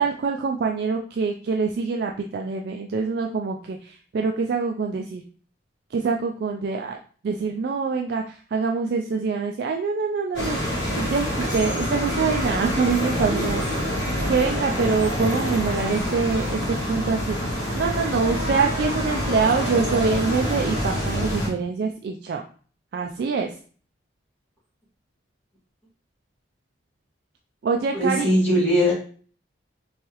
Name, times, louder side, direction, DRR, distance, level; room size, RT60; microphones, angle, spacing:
voice 1, 0.0-5.2 5.9-7.0 7.2-13.9 14.3-22.4 22.9-23.6 27.6-28.3, right 4 dB, 60° right, 2 dB, 0.3 m, -25 dB
sound 1, 10.3-21.5, equal, 65° left, 1.4 m, -26 dB
voice 2, 27.9-28.9, equal, 10° left, -8 dB, 1.9 m, -20 dB
3.5 x 3.2 x 3.0 m, 0.43 s
head